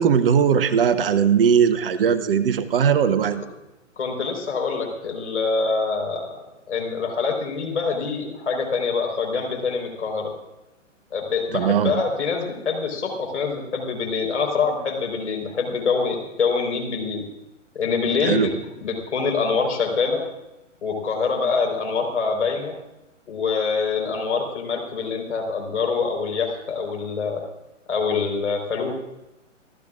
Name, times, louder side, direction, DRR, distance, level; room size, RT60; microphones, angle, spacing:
voice 1, 0.0-3.4 11.5-11.9 18.2-18.5, right 7 dB, 45° right, 12 dB, 0.9 m, -19 dB
voice 2, 4.0-6.3 6.7-10.3 11.1-17.3 17.7-18.5 18.8-20.2 20.8-22.7 23.3-27.4 27.9-28.9, left 5 dB, 65° left, 2 dB, 4.4 m, -25 dB
27.5 x 13.5 x 2.5 m, 0.97 s
figure-of-eight pair, 125°, 38 cm